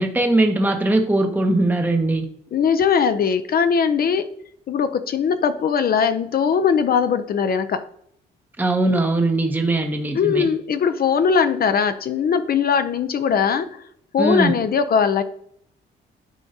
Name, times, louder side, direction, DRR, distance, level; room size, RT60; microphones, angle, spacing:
voice 1, 0.0-2.3 8.6-10.5 14.2-14.5, right 2 dB, 10° right, 4 dB, 0.8 m, -20 dB
voice 2, 2.5-4.3 4.7-7.8 10.1-13.8 14.1-15.2, left 6 dB, 50° left, 10 dB, 0.6 m, -20 dB
10.5 x 4.5 x 2.8 m, 0.68 s
cardioid pair, 90°, 20 cm